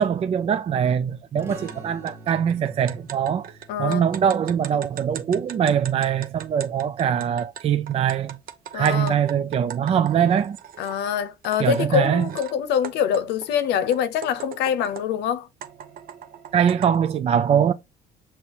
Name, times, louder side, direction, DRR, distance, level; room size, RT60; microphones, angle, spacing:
voice 1, 0.0-3.5 3.8-8.4 8.7-10.6 11.6-12.3 16.5-17.7, right 8 dB, 35° right, 0.3 m, -22 dB
sound 1, 1.4-6.6, right 2 dB, 15° right, 1.2 m, -47 dB
sound 2, 1.7-1.8 2.1-11.0 11.4-12.5 12.8-15.2 15.6-17.0, right 9 dB, 60° right, 0.7 m, -40 dB
voice 2, 3.7-4.1 8.7-9.2 10.8-15.5, left 8 dB, 80° left, 0.7 m, -24 dB
6.3 x 2.8 x 2.9 m
cardioid pair, 110°, 17 cm